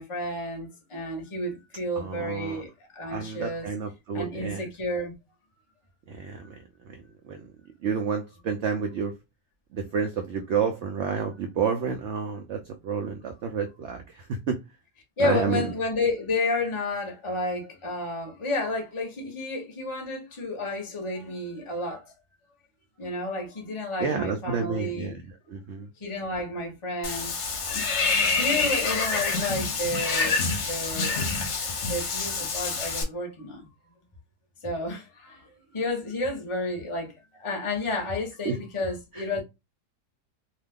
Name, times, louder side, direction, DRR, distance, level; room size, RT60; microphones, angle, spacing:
voice 1, 0.0-3.7 4.1-5.1 15.2-22.1 23.0-25.2 26.0-31.1 31.8-33.7 34.6-39.4, left 2 dB, 25° left, 0.7 m, -31 dB
voice 2, 2.0-2.6 3.1-4.6 6.1-6.6 6.9-7.5 7.8-9.1 9.7-14.6 15.2-15.7 24.0-25.2 25.5-25.9 38.5-38.6, right 6 dB, 80° right, 0.6 m, -30 dB
Water / Bathtub (filling or washing), 27.0-33.0, left 4 dB, 55° left, 0.9 m, -27 dB
2.7 x 2.2 x 3.5 m
omnidirectional pair, 1.7 m